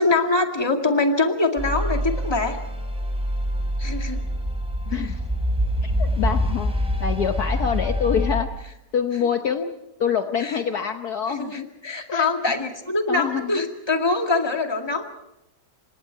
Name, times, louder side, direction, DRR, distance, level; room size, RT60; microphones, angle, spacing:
voice 1, 0.0-2.6 3.8-4.2 10.4-10.6 11.3-15.1, left 3 dB, 15° left, 3 dB, 2.1 m, -23 dB
sound 1, 1.6-8.4, equal, 5° right, 4.2 m, -25 dB
voice 2, 4.9-5.2 5.8-6.7 7.0-8.6 8.9-11.7 12.1-12.3 13.1-13.6, left 7 dB, 60° left, 6 dB, 1.5 m, -26 dB
28.5 x 25.5 x 4.6 m, 0.84 s
omnidirectional pair, 2.0 m